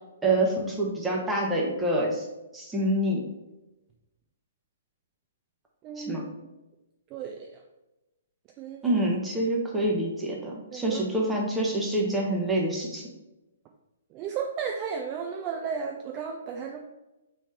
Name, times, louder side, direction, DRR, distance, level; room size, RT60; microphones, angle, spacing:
voice 1, 0.2-2.2 2.5-3.3 6.0-6.3 8.8-13.1, right 1 dB, 5° right, -2 dB, 0.8 m, -26 dB
voice 2, 5.8-6.5 7.1-7.6 8.6-9.0 9.3-9.4 10.7-11.0 14.1-16.8, right 6 dB, 25° right, 2 dB, 0.3 m, -34 dB
3.2 x 2.7 x 4.4 m, 0.99 s
figure-of-eight pair, 120°, 0 cm